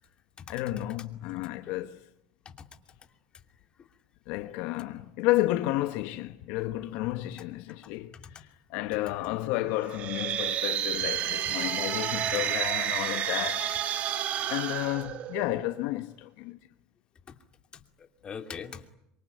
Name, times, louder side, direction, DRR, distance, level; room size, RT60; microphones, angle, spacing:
voice 1, 0.5-2.1 4.3-13.8 14.5-16.6, left 16 dB, 70° left, 1.2 m, -31 dB
voice 2, 7.8-8.3 11.4-11.7 17.3-17.4 17.7-18.9, left 6 dB, 30° left, 2.7 m, -43 dB
sound 1, 9.8-15.8, right 10 dB, 50° right, 2.1 m, -30 dB
26.0 x 24.5 x 9.3 m
supercardioid pair, 105°, 3 cm